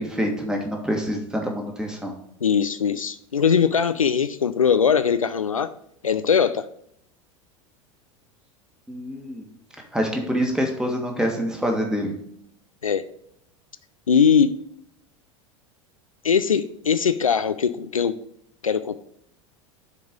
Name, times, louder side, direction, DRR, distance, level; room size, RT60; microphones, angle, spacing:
voice 1, 0.0-2.1 8.9-9.4 9.9-12.1, equal, 5° right, 2 dB, 1.6 m, -26 dB
voice 2, 2.4-5.7 6.0-6.7 12.8-13.0 14.1-14.5 16.2-18.2 18.6-19.0, left 7 dB, 85° left, 12 dB, 0.4 m, -21 dB
6.8 x 4.7 x 5.1 m, 0.71 s
figure-of-eight pair, 80°, 17 cm